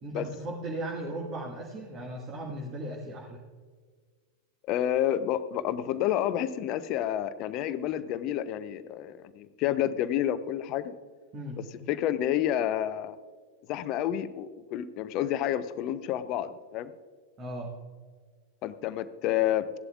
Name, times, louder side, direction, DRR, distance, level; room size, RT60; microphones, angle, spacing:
voice 1, 0.0-3.4 11.3-11.7 17.4-17.7, right 1 dB, 30° right, -1 dB, 1.7 m, -37 dB
voice 2, 4.7-10.9 11.9-13.2 13.7-16.9 18.6-19.7, left 11 dB, 40° left, 13 dB, 0.6 m, -29 dB
16.0 x 11.0 x 2.4 m, 1.5 s
figure-of-eight pair, 90°, 0 cm